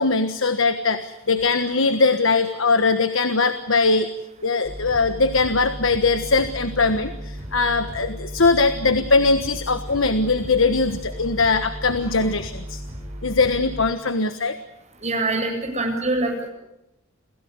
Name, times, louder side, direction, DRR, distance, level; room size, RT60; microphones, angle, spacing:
voice 1, 0.0-4.1 4.4-12.8 13.2-14.6, left 3 dB, 70° left, 10 dB, 1.4 m, -21 dB
sound 1, 4.6-13.9, equal, 10° right, 6.5 m, -35 dB
voice 2, 15.0-16.5, right 2 dB, 35° right, 2 dB, 7.7 m, -24 dB
28.0 x 17.0 x 9.6 m, 0.86 s
head